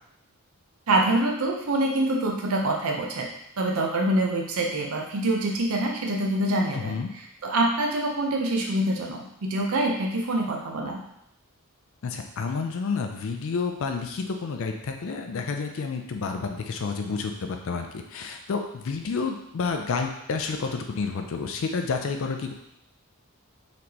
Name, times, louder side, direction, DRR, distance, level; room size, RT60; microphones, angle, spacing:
voice 1, 0.9-3.3 3.6-11.0, right 1 dB, 70° right, 0 dB, 0.6 m, -25 dB
voice 2, 6.7-7.1 12.0-22.5, left 4 dB, 65° left, 4 dB, 0.4 m, -30 dB
4.1 x 3.2 x 2.8 m, 0.77 s
head